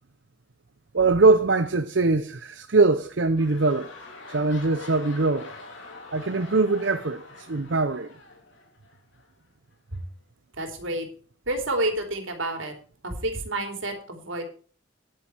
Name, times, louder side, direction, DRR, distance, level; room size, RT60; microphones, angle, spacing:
voice 1, 0.9-3.9 4.3-5.5 6.1-8.1, right 3 dB, 65° right, 0.8 m, -22 dB
sound 1, 2.9-9.3 9.9-10.0, left 3 dB, 70° left, 3.9 m, -44 dB
voice 2, 10.6-11.1 11.5-12.7 13.0-14.4, right 1 dB, 80° right, 3.2 m, -29 dB
10.5 x 9.4 x 4.5 m
head